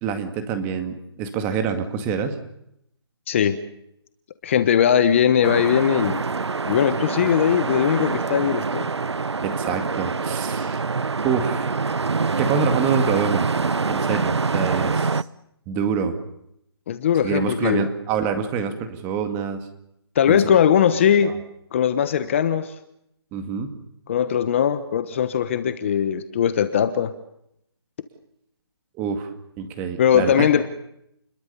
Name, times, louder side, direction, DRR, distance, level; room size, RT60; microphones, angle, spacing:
voice 1, 0.0-2.4 9.4-10.8 11.2-11.8 12.4-13.5 13.9-15.2 15.7-16.1 17.2-19.7 20.3-20.4 21.2-21.3 23.3-23.7 29.0-29.3 29.6-30.5, right 6 dB, 15° right, 8 dB, 2.1 m, -26 dB
voice 2, 4.4-6.2 6.7-8.9 16.9-17.9 20.1-21.3 21.7-22.7 24.1-27.1 30.0-30.7, left 8 dB, 30° left, 12 dB, 1.3 m, -20 dB
sound 1, 5.4-15.2, right 4 dB, 90° right, 1.0 m, -25 dB
29.5 x 22.0 x 7.0 m, 0.77 s
hypercardioid pair, 165°, 14 cm